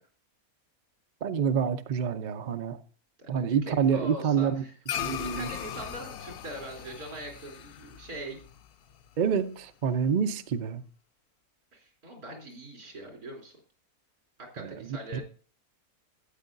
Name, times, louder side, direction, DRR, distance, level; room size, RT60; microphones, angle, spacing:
voice 1, 1.2-2.8 3.3-4.6 5.0-5.5 9.2-10.8 14.6-15.0, right 7 dB, 50° right, 0.6 m, -27 dB
voice 2, 3.2-4.7 5.3-8.4 11.7-13.5 14.5-15.2, right 1 dB, 80° right, 3.7 m, -42 dB
sound 1, 4.9-9.5, left 9 dB, 80° left, 0.5 m, -38 dB
13.0 x 8.9 x 2.5 m
omnidirectional pair, 1.5 m